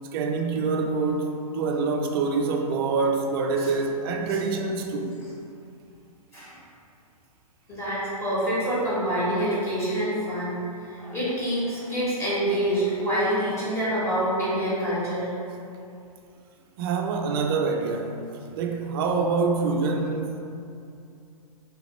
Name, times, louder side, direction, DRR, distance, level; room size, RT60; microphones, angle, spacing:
voice 1, 0.1-5.2 16.8-18.2 18.5-20.4, right 4 dB, 40° right, 3 dB, 0.4 m, -26 dB
voice 2, 7.7-10.6 10.9-15.3, equal, 15° left, -10 dB, 1.2 m, -26 dB
3.2 x 2.9 x 3.1 m, 2.6 s
hypercardioid pair, 125°, 20 cm